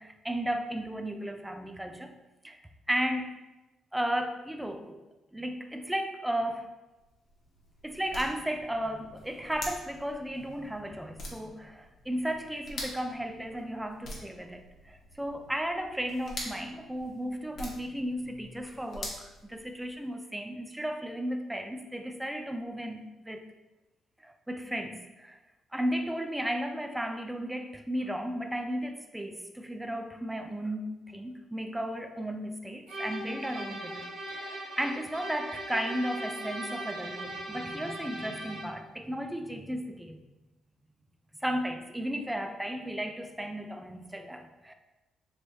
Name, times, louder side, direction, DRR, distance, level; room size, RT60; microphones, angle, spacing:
voice 1, 0.0-2.1 2.4-2.6 2.9-3.4 3.9-5.0 5.3-6.7 7.8-23.4 24.2-25.4 25.7-40.2 41.4-44.7, equal, 5° right, 6 dB, 0.3 m, -34 dB
sound 1, 6.9-20.1, left 1 dB, 60° left, 0.9 m, -45 dB
sound 2, 32.9-38.8, right 1 dB, 85° right, 1.2 m, -39 dB
3.1 x 3.1 x 2.6 m, 1.1 s
cardioid pair, 90°, 0 cm